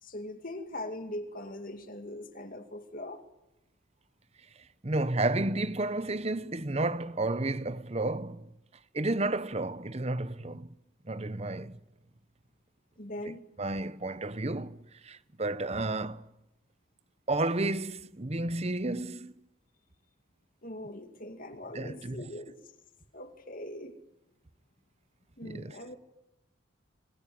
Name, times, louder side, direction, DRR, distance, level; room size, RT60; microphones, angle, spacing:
voice 1, 0.0-3.2 13.0-13.4 20.6-22.5 23.1-23.9 25.4-26.0, left 1 dB, 40° left, 2.3 m, -41 dB
voice 2, 4.8-8.5 8.9-10.7 11.0-11.8 13.2-13.3 13.6-16.3 17.3-19.3 21.7-22.3 25.4-25.8, right 2 dB, 30° right, 0.8 m, -32 dB
25.5 x 21.5 x 9.3 m
head